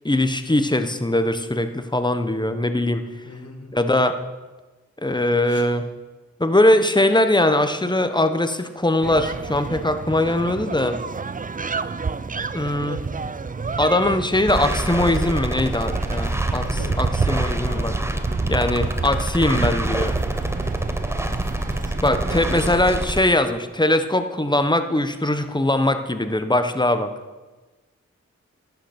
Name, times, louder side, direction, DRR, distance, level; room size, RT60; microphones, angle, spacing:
voice 1, 0.0-3.0 3.7-4.1 5.0-5.8 6.4-11.0 12.5-13.0 13.8-16.6 17.0-18.0 18.5-20.1 22.0-27.1, left 1 dB, 15° left, 8 dB, 1.0 m, -21 dB
voice 2, 3.2-3.7 5.5-5.7 16.6-17.0 22.3-22.5, left 3 dB, 55° left, 2 dB, 2.0 m, -39 dB
sound 1, 9.0-22.8, right 4 dB, 30° right, 0.5 m, -29 dB
sound 2, 14.5-23.2, right 1 dB, 10° right, 0.9 m, -27 dB
11.0 x 9.4 x 6.0 m, 1.2 s
cardioid pair, 45°, 30 cm